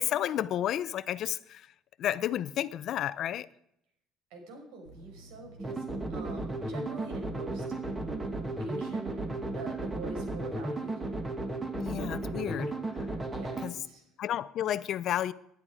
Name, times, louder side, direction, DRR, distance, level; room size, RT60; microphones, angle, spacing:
voice 1, 0.0-1.7 2.0-3.5 11.7-12.7 13.6-13.7 14.2-15.3, left 11 dB, 45° left, 0.6 m, -31 dB
voice 2, 4.3-5.8 6.1-7.6 8.6-11.0 13.3-14.0, right 3 dB, 90° right, 5.6 m, -44 dB
sound 1, 4.9-9.7, right 1 dB, 65° right, 7.2 m, -53 dB
sound 2, 5.6-13.7, right 2 dB, 15° right, 1.6 m, -34 dB
20.0 x 10.5 x 5.0 m
cardioid pair, 160°, 0 cm